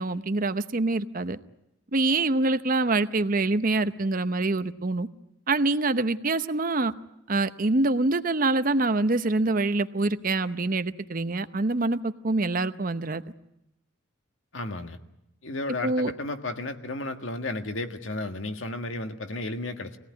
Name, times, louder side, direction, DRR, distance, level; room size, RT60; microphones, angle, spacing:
voice 1, 0.0-1.4 1.9-5.1 5.5-6.9 7.3-13.2 15.8-16.1, right 2 dB, 45° right, 11 dB, 0.8 m, -25 dB
voice 2, 14.5-15.0 15.4-20.0, left 2 dB, 85° left, 7 dB, 1.7 m, -33 dB
23.5 x 17.5 x 9.5 m, 0.88 s
head